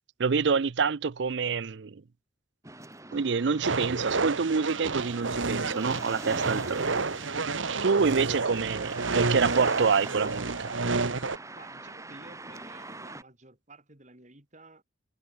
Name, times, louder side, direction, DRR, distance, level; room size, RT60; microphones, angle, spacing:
voice 1, 0.2-2.0 3.1-7.0 7.8-10.7, right 5 dB, 60° right, 0.5 m, -27 dB
sound 1, 2.6-13.2, right 2 dB, 15° right, 6.3 m, -43 dB
sound 2, 3.6-11.4, right 4 dB, 80° right, 1.4 m, -30 dB
voice 2, 11.5-14.8, right 2 dB, 40° right, 4.1 m, -52 dB
head